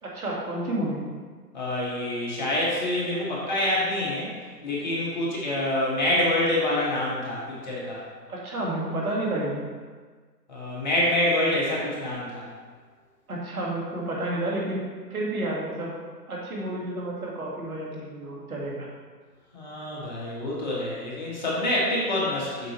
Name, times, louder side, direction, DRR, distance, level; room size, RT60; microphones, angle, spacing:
voice 1, 0.0-1.0 8.3-9.6 13.3-14.8 15.1-15.9 16.3-18.9, right 1 dB, 60° right, -4 dB, 2.2 m, -30 dB
voice 2, 1.5-4.3 4.6-8.0 10.5-12.4 19.5-22.7, left 1 dB, 25° left, -5 dB, 1.3 m, -26 dB
7.7 x 5.9 x 3.3 m, 1.5 s
figure-of-eight pair, 150°, 50 cm